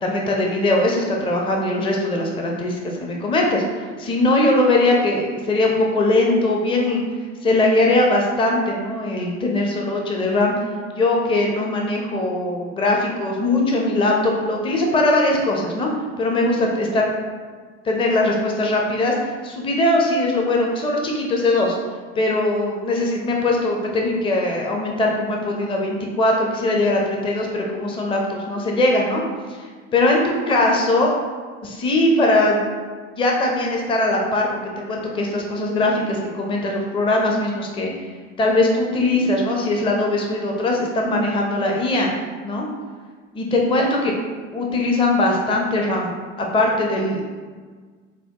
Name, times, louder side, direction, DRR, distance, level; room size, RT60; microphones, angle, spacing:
voice 1, 0.0-3.6 4.0-7.0 7.4-10.5 10.9-15.9 16.2-17.0 17.8-21.8 22.2-29.2 29.9-31.1 31.6-32.6 33.2-34.6 34.9-37.9 38.4-42.1 42.4-42.7 43.3-44.1 44.5-46.1 46.4-47.2, left 2 dB, 15° left, 0 dB, 0.5 m, -20 dB
5.5 x 2.2 x 2.7 m, 1.5 s
figure-of-eight pair, 70°, 37 cm